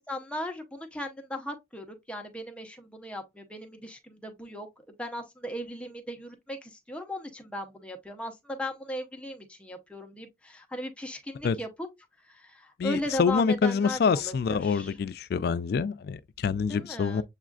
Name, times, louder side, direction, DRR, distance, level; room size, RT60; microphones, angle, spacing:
voice 1, 0.0-4.7 5.0-11.9 12.3-15.0 16.7-17.2, left 1 dB, 5° left, 0.7 m, -37 dB
voice 2, 12.8-17.2, left 5 dB, 55° left, 0.3 m, -26 dB
7.1 x 2.4 x 2.3 m
head